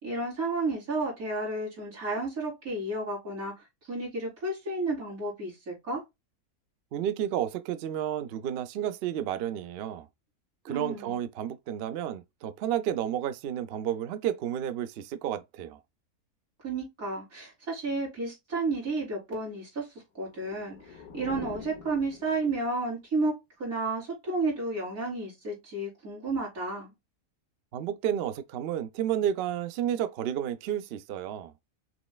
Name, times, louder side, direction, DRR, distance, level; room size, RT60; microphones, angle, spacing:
voice 1, 0.0-3.5 3.9-6.0 10.7-11.1 16.6-19.9 20.1-23.3 23.6-26.9, right 2 dB, 60° right, 3.4 m, -32 dB
voice 2, 6.9-10.1 10.6-15.8 27.7-31.5, right 10 dB, 85° right, 0.5 m, -31 dB
sound 1, 20.2-22.9, left 6 dB, 80° left, 1.5 m, -45 dB
6.1 x 3.1 x 2.3 m
omnidirectional pair, 1.6 m